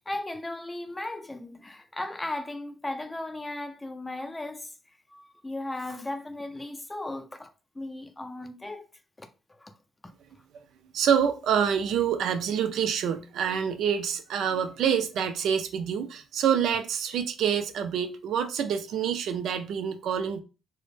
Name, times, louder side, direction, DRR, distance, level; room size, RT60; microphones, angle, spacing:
voice 1, 0.1-4.7 5.1-8.8 9.2-9.7, left 2 dB, 15° left, 0.4 m, -36 dB
voice 2, 10.9-20.4, right 8 dB, 75° right, 0.3 m, -27 dB
2.0 x 2.0 x 3.1 m
cardioid pair, 90°, 0 cm